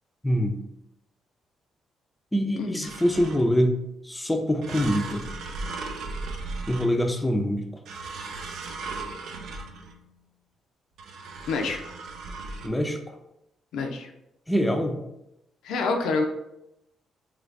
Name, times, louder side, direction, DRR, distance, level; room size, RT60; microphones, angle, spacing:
voice 1, 0.2-0.6 2.3-3.8 4.0-5.3 6.7-7.7 12.6-13.1 14.5-15.0, equal, 10° left, 4 dB, 0.4 m, -24 dB
sound 1, 2.8-3.7 4.6-7.3 7.9-10.1 11.0-12.7, right 3 dB, 75° right, 0.4 m, -37 dB
voice 2, 11.5-11.8 13.7-14.1 15.6-16.2, left 4 dB, 80° left, 3 dB, 0.4 m, -26 dB
3.2 x 2.5 x 3.3 m, 0.85 s
cardioid pair, 90°, 0 cm